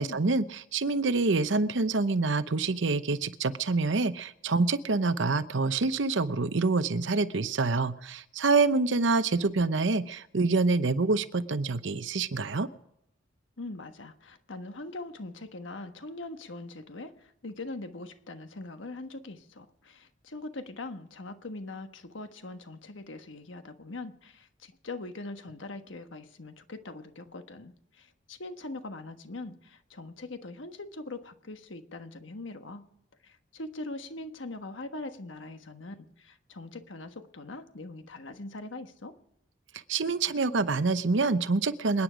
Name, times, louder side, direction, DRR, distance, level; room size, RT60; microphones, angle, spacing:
voice 1, 0.0-12.7 39.9-42.0, right 3 dB, 75° right, 13 dB, 0.8 m, -26 dB
voice 2, 13.6-32.8 33.2-39.1, left 2 dB, 80° left, 8 dB, 1.3 m, -42 dB
27.5 x 9.8 x 5.1 m, 0.80 s
head